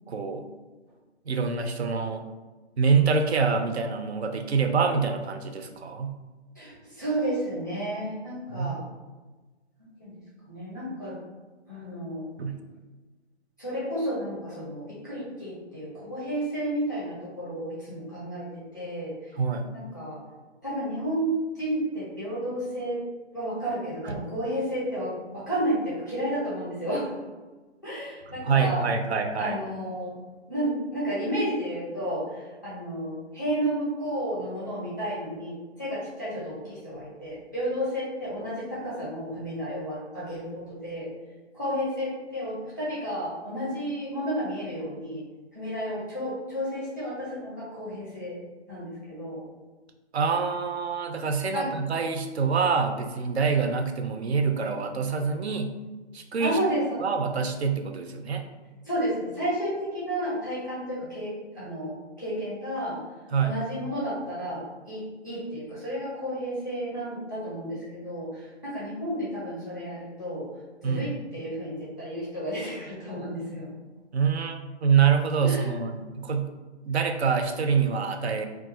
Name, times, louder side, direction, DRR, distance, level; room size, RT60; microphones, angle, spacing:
voice 1, 0.1-0.5 1.3-2.2 2.8-6.2 8.5-8.7 12.4-12.6 19.4-19.7 24.0-24.1 28.4-29.6 50.1-55.7 56.1-56.6 57.0-58.4 63.3-63.6 70.8-71.2 74.1-76.5 76.9-78.5, right 5 dB, 65° right, 6 dB, 0.5 m, -26 dB
voice 2, 6.5-8.8 10.0-10.1 10.5-11.2 11.7-12.3 13.6-19.1 19.7-20.2 20.6-23.0 23.3-27.1 27.8-28.8 29.4-30.2 30.5-41.1 41.5-45.2 45.5-48.4 48.7-49.4 51.5-51.7 56.4-57.0 58.8-63.0 63.4-70.5 70.8-73.7 75.4-75.8, equal, 15° left, -9 dB, 0.5 m, -32 dB
2.4 x 2.2 x 3.8 m, 1.2 s
hypercardioid pair, 165°, 35 cm